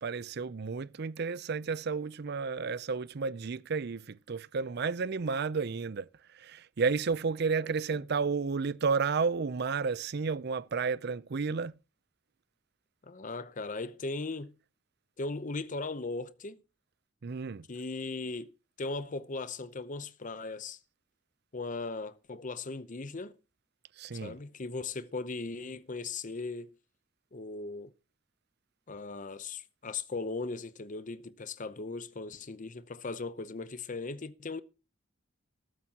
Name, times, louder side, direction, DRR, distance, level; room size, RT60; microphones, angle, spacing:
voice 1, 0.0-11.7 17.2-17.7 24.0-24.4, right 5 dB, 55° right, 0.5 m, -32 dB
voice 2, 13.0-14.5 15.2-16.6 17.7-20.8 21.5-23.3 24.1-26.7 27.3-27.9 28.9-34.6, left 3 dB, 40° left, 0.7 m, -38 dB
13.5 x 12.5 x 2.9 m
head